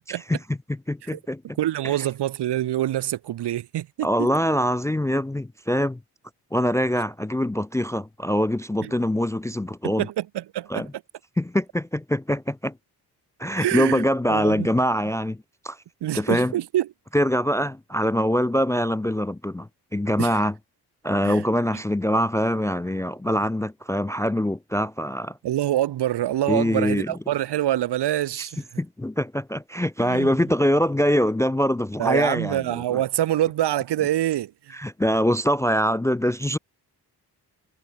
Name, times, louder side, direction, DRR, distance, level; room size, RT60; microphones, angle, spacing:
voice 1, 0.1-0.4 0.9-1.6 4.0-6.0 6.5-10.1 10.7-10.9 11.4-12.7 13.4-15.8 16.1-16.5 17.1-20.5 21.0-25.4 26.5-27.1 28.8-32.6 32.9-33.0 34.8-36.6, equal, 10° left, 0.3 m, -23 dB
voice 2, 1.6-4.3 8.8-8.9 9.8-10.9 13.6-14.7 16.0-16.9 20.2-20.4 21.2-21.4 25.4-28.6 30.0-30.4 32.0-34.8, right 13 dB, 80° right, 1.1 m, -26 dB
wide cardioid pair, 130°, 40 cm